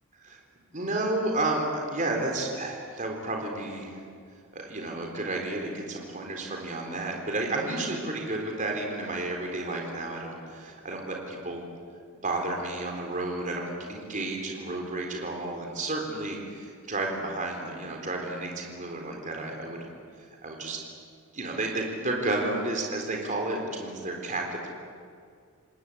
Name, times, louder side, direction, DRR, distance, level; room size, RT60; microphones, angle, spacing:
voice 1, 0.7-4.0 4.5-11.6 12.2-19.9 20.4-20.8 21.3-24.7, right 2 dB, 35° right, 1 dB, 4.0 m, -31 dB
28.5 x 19.5 x 8.8 m, 2.2 s
head